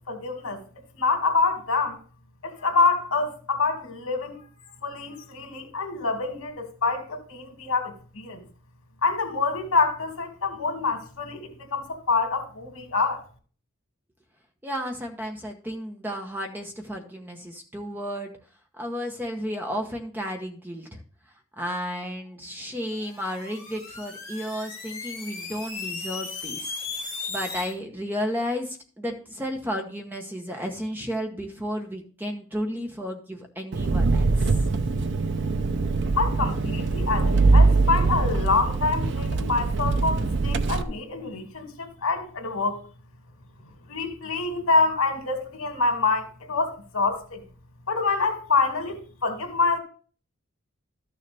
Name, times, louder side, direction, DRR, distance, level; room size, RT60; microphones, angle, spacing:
voice 1, 0.1-0.6 0.9-2.0 2.4-4.4 4.8-8.4 9.0-13.2 36.2-42.8 43.9-47.4 47.9-49.8, left 4 dB, 85° left, 2.4 m, -26 dB
voice 2, 14.6-18.3 18.8-21.0 21.6-26.7 27.3-34.3, equal, 10° right, 1.0 m, -33 dB
sound 1, 22.9-27.7, left 4 dB, 15° left, 3.7 m, -36 dB
Engine, 33.7-40.8, right 3 dB, 55° right, 0.6 m, -22 dB
13.0 x 6.8 x 3.4 m
head